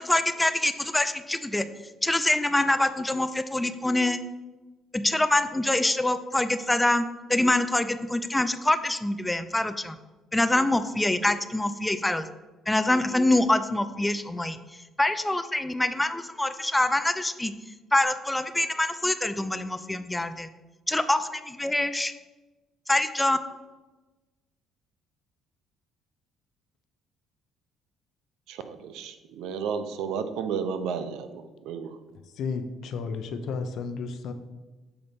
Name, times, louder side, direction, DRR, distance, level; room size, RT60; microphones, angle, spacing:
voice 1, 0.0-1.7 2.0-4.2 4.9-10.0 10.3-12.3 12.7-14.6 15.0-17.5 17.9-20.5 20.9-22.1 22.9-23.4, left 1 dB, 10° left, 10 dB, 0.5 m, -25 dB
voice 2, 28.5-31.9, right 6 dB, 80° right, 9 dB, 0.6 m, -32 dB
voice 3, 32.3-34.3, left 5 dB, 65° left, 8 dB, 0.7 m, -32 dB
7.0 x 4.0 x 5.2 m, 1.2 s
cardioid pair, 95°, 0 cm